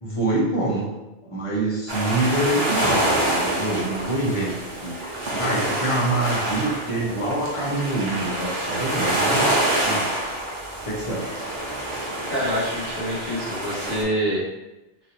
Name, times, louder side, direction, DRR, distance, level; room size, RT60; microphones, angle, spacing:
voice 1, 0.0-0.9 1.2-10.1 10.8-11.4, right 2 dB, 35° left, -5 dB, 0.8 m, -26 dB
sound 1, 1.9-14.0, right 1 dB, 75° right, 1.0 m, -26 dB
voice 2, 12.3-14.4, equal, 25° right, -14 dB, 1.1 m, -26 dB
3.1 x 2.7 x 2.6 m, 1.0 s
omnidirectional pair, 1.0 m